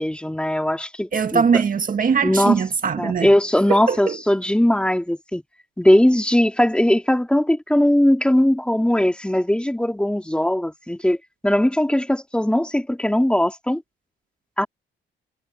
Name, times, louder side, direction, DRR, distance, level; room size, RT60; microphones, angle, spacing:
voice 1, 0.0-1.5 2.2-2.6 3.0-5.4 5.8-11.2 11.4-13.8 14.6-14.7, left 1 dB, 5° left, 3.6 m, -19 dB
voice 2, 1.1-3.3 3.7-4.2, right 6 dB, 45° right, 1.8 m, -21 dB
cardioid pair, 90°, 20 cm